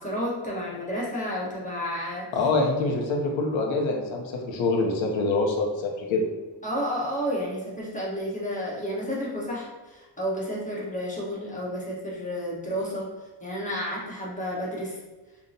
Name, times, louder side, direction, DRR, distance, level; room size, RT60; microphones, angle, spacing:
voice 1, 0.0-2.2 6.6-13.1 13.4-15.0, equal, 15° left, -5 dB, 1.3 m, -31 dB
voice 2, 2.3-6.2, left 3 dB, 75° left, 2 dB, 0.9 m, -25 dB
5.3 x 2.4 x 2.8 m, 1.2 s
cardioid pair, 110°, 46 cm